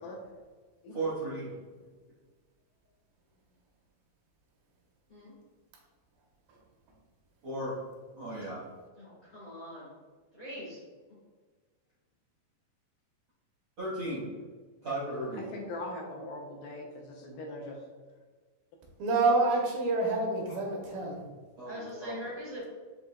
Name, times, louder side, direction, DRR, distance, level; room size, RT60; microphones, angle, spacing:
voice 1, 0.9-1.5 7.4-7.7 8.2-8.6 13.8-14.3 14.8-15.4 21.6-22.2, right 1 dB, 65° right, -10 dB, 1.3 m, -35 dB
voice 2, 9.0-9.9 10.3-10.8 21.6-22.7, equal, 50° left, -8 dB, 1.3 m, -42 dB
voice 3, 15.3-17.8 20.5-20.6, left 2 dB, 80° left, 1 dB, 2.1 m, -41 dB
voice 4, 19.0-21.2, right 3 dB, 85° right, -1 dB, 2.6 m, -27 dB
7.0 x 2.8 x 2.2 m, 1.4 s
omnidirectional pair, 4.1 m